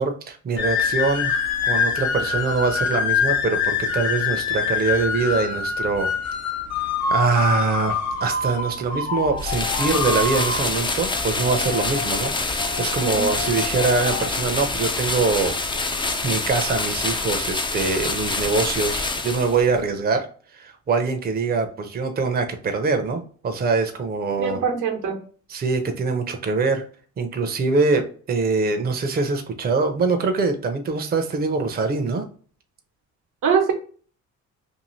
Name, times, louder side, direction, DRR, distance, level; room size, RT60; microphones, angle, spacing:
voice 1, 0.0-1.3 1.7-6.1 7.1-15.5 16.2-24.6 25.5-26.9 27.2-32.3, right 4 dB, 30° right, 5 dB, 0.6 m, -23 dB
sound 1, 0.6-16.2, left 5 dB, 60° left, 1.0 m, -26 dB
sound 2, 9.4-19.8, left 3 dB, 15° left, 0.4 m, -26 dB
voice 2, 24.4-25.2 33.4-33.7, right 6 dB, 85° right, 3 dB, 0.9 m, -22 dB
2.7 x 2.5 x 3.0 m, 0.43 s
cardioid pair, 90°, 30 cm